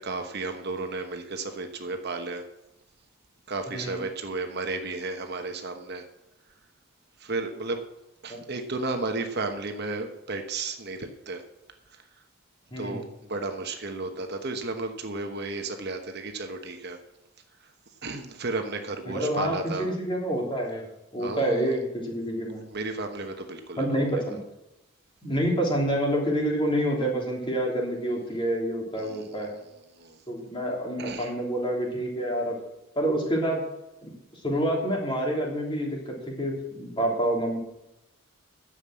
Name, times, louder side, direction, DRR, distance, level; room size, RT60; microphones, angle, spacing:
voice 1, 0.0-2.4 3.5-6.0 7.2-7.8 8.2-11.4 12.8-17.0 18.0-19.9 21.2-21.8 22.7-24.1 29.0-29.6 30.0-30.2 31.0-31.3, right 3 dB, 50° right, 5 dB, 1.1 m, -33 dB
voice 2, 3.7-4.0 8.3-8.4 12.7-13.0 19.0-20.9 21.1-22.6 23.8-24.4 25.2-29.5 30.3-32.6 32.9-33.6 34.0-34.1 34.4-37.6, right 1 dB, 25° left, -1 dB, 3.2 m, -27 dB
10.5 x 7.4 x 7.5 m, 0.90 s
head